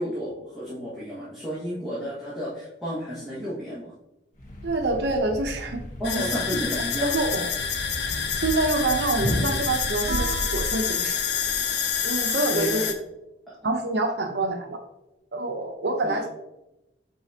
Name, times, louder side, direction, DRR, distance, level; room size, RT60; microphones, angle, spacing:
voice 1, 0.0-3.9 6.0-7.2 12.5-12.9 13.5-13.6 16.0-16.3, equal, ahead, -11 dB, 1.6 m, -32 dB
Thump thud, 4.3-10.6, equal, 45° left, 1.1 m, -34 dB
voice 2, 4.6-5.8 6.1-6.2 7.1-7.5 8.3-11.2 12.0-12.9 13.6-14.8 15.3-16.3, right 2 dB, 70° right, 4 dB, 0.7 m, -26 dB
sound 1, 6.0-12.9, left 6 dB, 70° left, 0.7 m, -27 dB
Guitar, 10.0-12.5, right 5 dB, 35° right, 0.7 m, -39 dB
8.1 x 4.2 x 2.8 m, 0.94 s
head